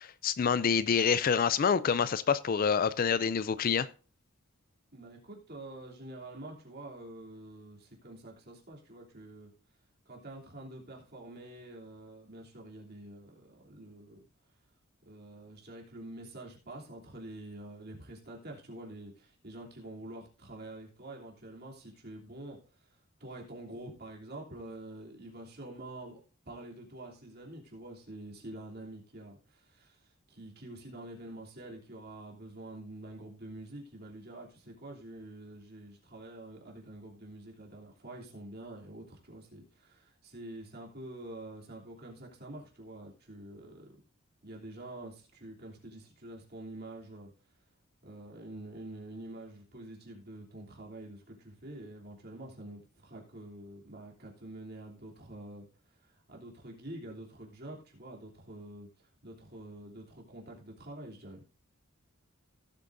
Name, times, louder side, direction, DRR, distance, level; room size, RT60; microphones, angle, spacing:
voice 1, 0.0-3.9, left 6 dB, 40° left, 0.4 m, -27 dB
voice 2, 4.9-9.5 10.0-14.2 15.0-26.2 26.4-43.9 44.4-47.3 48.0-55.7 56.0-58.9 59.2-61.4, right 1 dB, 45° right, 3.0 m, -47 dB
17.5 x 8.2 x 2.6 m
head